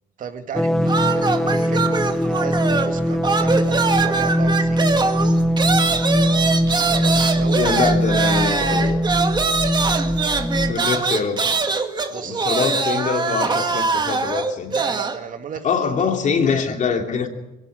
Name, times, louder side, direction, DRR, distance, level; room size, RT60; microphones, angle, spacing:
voice 1, 0.2-4.9 6.9-7.9 8.6-8.9 12.1-12.4 14.7-16.2, right 7 dB, 50° right, 2.0 m, -34 dB
sound 1, 0.5-10.7, equal, ahead, 1.0 m, -21 dB
sound 2, 0.9-3.0 3.2-15.2, right 4 dB, 25° right, 1.9 m, -22 dB
voice 2, 7.5-9.0 10.7-11.4 12.2-14.7 15.6-17.3, left 6 dB, 50° left, 2.9 m, -23 dB
22.5 x 17.5 x 7.6 m
cardioid pair, 110°, 17 cm